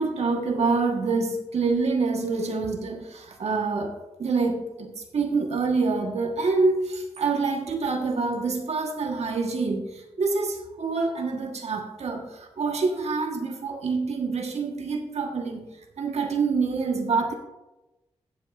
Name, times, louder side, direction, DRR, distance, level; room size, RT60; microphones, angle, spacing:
voice 1, 0.0-15.7 16.0-17.3, right 4 dB, 80° right, 3 dB, 1.3 m, -26 dB
16.0 x 8.1 x 2.5 m, 0.98 s
cardioid pair, 50°, 11 cm